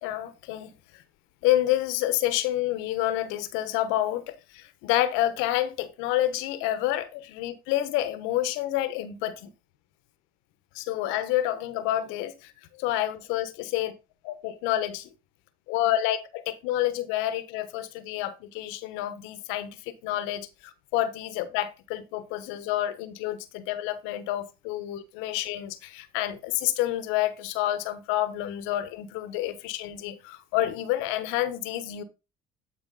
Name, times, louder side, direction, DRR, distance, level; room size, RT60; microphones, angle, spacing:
voice 1, 0.0-0.7 1.4-9.5 10.7-12.5 12.8-13.9 14.2-15.1 15.7-20.5 20.9-32.0, left 13 dB, 80° left, 1.1 m, -28 dB
11.5 x 4.7 x 4.0 m
supercardioid pair, 70°, 20 cm